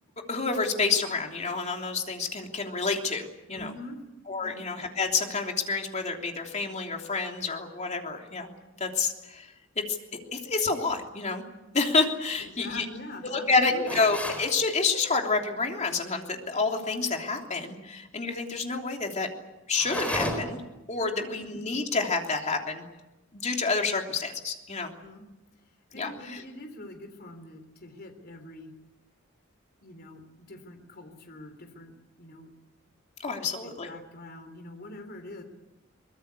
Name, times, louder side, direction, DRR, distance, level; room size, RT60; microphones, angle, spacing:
voice 1, 0.3-3.7 4.3-8.5 8.8-10.0 10.3-11.4 11.7-12.8 13.2-19.3 19.7-20.6 20.9-22.8 23.3-24.9 25.9-26.4 33.2-33.9, left 4 dB, 35° left, 2 dB, 3.2 m, -28 dB
voice 2, 3.5-4.0 4.4-4.6 12.4-14.0 21.1-21.4 25.0-25.2 25.9-28.7 29.8-31.9 32.2-32.5 33.3-35.4, left 2 dB, 50° left, 6 dB, 3.5 m, -44 dB
sound 1, 13.9-14.5 19.7-20.7, left 1 dB, 5° left, 4.2 m, -32 dB
23.5 x 21.0 x 8.3 m, 1.0 s
head